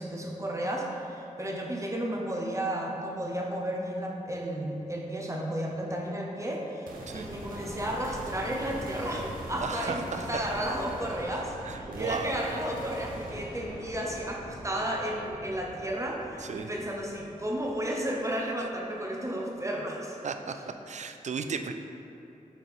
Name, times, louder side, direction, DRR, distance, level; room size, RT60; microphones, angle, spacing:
voice 1, 0.0-20.2, right 1 dB, 20° right, -1 dB, 0.8 m, -33 dB
sound 1, 6.9-18.2, right 1 dB, 85° right, 0.8 m, -42 dB
voice 2, 9.6-10.2 11.6-12.3 16.4-16.7 20.2-20.6 20.9-21.7, right 5 dB, 55° right, 7 dB, 0.4 m, -35 dB
6.1 x 4.3 x 3.6 m, 2.8 s
wide cardioid pair, 75°, 14 cm